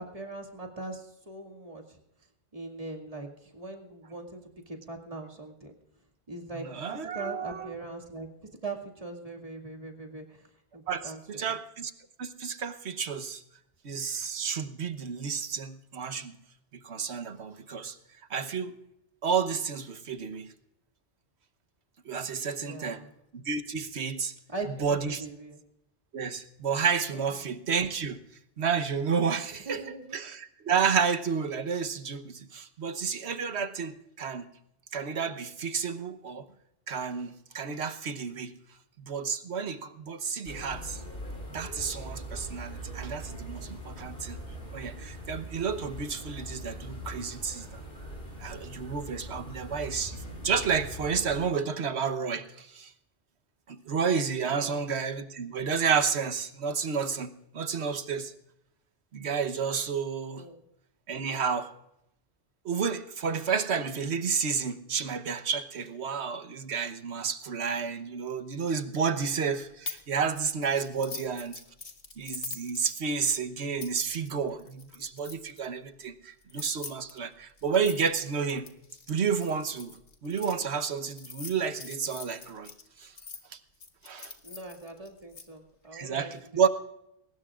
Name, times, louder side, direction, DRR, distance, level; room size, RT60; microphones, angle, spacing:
voice 1, 0.0-2.0 2.5-5.7 6.3-8.3 8.6-10.4 10.7-11.5 22.6-23.1 24.5-25.6 29.7-30.2 54.4-54.7 60.3-60.6 71.0-71.3 84.4-86.3, right 2 dB, 30° right, 1 dB, 2.3 m, -41 dB
voice 2, 6.5-7.7 10.9-11.9 12.2-13.4 13.8-16.4 16.7-18.0 18.3-18.7 19.2-20.5 22.0-23.0 23.3-24.3 24.8-25.2 26.1-28.2 28.6-29.8 30.1-34.5 34.9-36.5 36.9-38.6 39.0-41.0 41.5-44.4 44.7-47.7 48.4-52.9 53.7-58.3 59.1-60.4 61.1-61.7 62.6-71.6 72.2-78.7 79.1-80.0 80.2-82.7 83.0-83.1 83.5-83.6 84.0-84.3 85.9-86.7, right 6 dB, 70° right, 10 dB, 1.3 m, -31 dB
sound 1, 40.5-51.4, equal, 55° left, 5.6 m, -41 dB
sound 2, 69.9-70.1 70.4-75.7 76.4-80.5 81.1-83.4 83.8-85.4, left 5 dB, 75° left, 1.9 m, -43 dB
22.0 x 19.5 x 2.5 m, 0.84 s
omnidirectional pair, 1.1 m